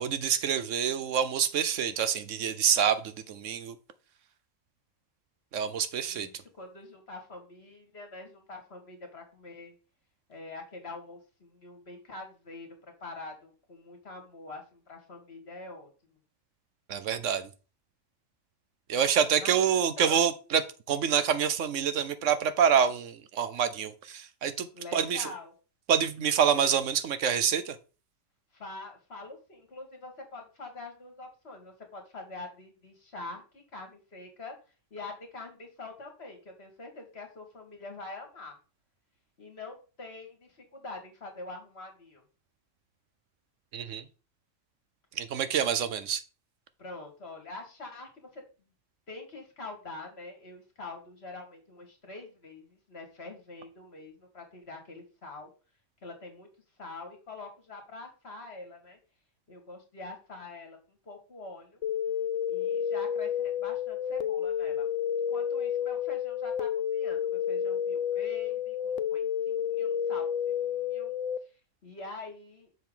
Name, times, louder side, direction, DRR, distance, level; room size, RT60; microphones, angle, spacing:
voice 1, 0.0-3.8 5.5-6.3 16.9-17.5 18.9-24.7 24.9-25.3 25.9-27.8 43.7-44.0 45.2-46.2, right 8 dB, 70° right, 1.0 m, -27 dB
voice 2, 6.1-9.7 10.3-16.2 19.3-19.6 20.0-20.2 24.7-25.5 28.5-34.6 34.9-38.6 39.4-42.2 45.8-45.9 46.8-48.4 49.1-55.5 56.0-56.5 56.8-59.0 59.5-60.8 61.1-61.8 62.5-64.9 65.3-71.2 71.8-72.7, left 2 dB, 55° left, 2.2 m, -45 dB
sound 1, 61.8-71.4, left 9 dB, 75° left, 1.0 m, -30 dB
7.2 x 5.9 x 3.8 m
omnidirectional pair, 1.3 m